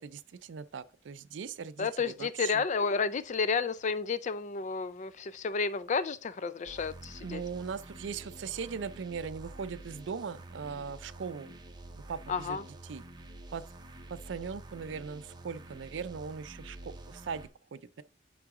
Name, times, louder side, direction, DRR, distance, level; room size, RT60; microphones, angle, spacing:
voice 1, 0.0-2.6 7.2-11.5 11.9-12.6 12.8-13.0 13.5-13.6 14.1-18.0, right 6 dB, 75° right, 0.4 m, -39 dB
voice 2, 1.8-7.4 12.3-12.6, left 5 dB, 40° left, 0.4 m, -31 dB
sound 1, 6.6-17.5, right 1 dB, 25° right, 0.7 m, -48 dB
9.4 x 3.9 x 3.6 m
head